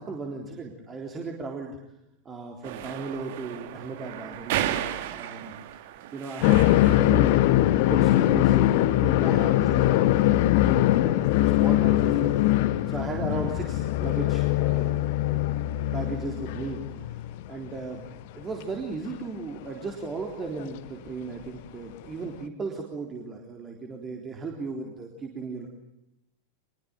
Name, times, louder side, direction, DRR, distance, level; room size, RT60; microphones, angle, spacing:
voice 1, 0.0-1.8 2.3-5.5 6.1-15.0 15.3-15.4 15.9-17.2 17.5-18.1 18.3-25.7, right 3 dB, 20° right, 1 dB, 3.8 m, -36 dB
sound 1, 2.6-7.2, right 12 dB, 50° right, 1.8 m, -34 dB
sound 2, 6.4-17.4 17.7-17.8 19.1-19.2 20.6-20.7 22.2-22.3, left 15 dB, 50° left, 1.4 m, -22 dB
25.5 x 22.5 x 9.0 m, 0.85 s
figure-of-eight pair, 90°, 0 cm